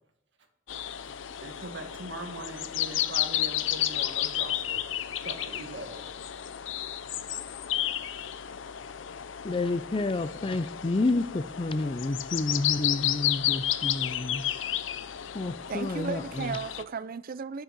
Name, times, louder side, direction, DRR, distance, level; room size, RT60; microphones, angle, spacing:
sound 1, 0.7-16.8, left 12 dB, 90° left, 0.6 m, -32 dB
voice 1, 1.4-4.8 5.2-6.1, right 2 dB, 70° right, 1.8 m, -41 dB
voice 2, 9.4-14.5 15.3-16.6, left 2 dB, 30° left, 0.5 m, -30 dB
voice 3, 15.7-17.6, right 5 dB, 50° right, 0.5 m, -35 dB
9.6 x 6.4 x 8.7 m
head